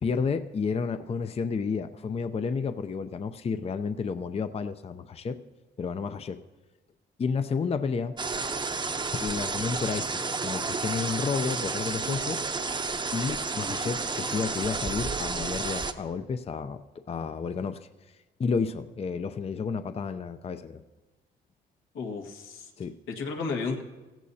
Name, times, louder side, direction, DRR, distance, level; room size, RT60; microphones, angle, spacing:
voice 1, 0.0-5.4 5.8-6.4 7.2-8.2 9.2-12.4 13.1-17.9 18.4-20.8 22.8-23.0, left 5 dB, 30° left, 10 dB, 0.5 m, -31 dB
sound 1, 8.2-15.9, right 4 dB, 25° right, 0.8 m, -31 dB
voice 2, 21.9-22.7 23.1-23.8, left 4 dB, 90° left, 1 dB, 1.8 m, -33 dB
15.5 x 15.0 x 2.8 m, 1.2 s
cardioid pair, 90°, 20 cm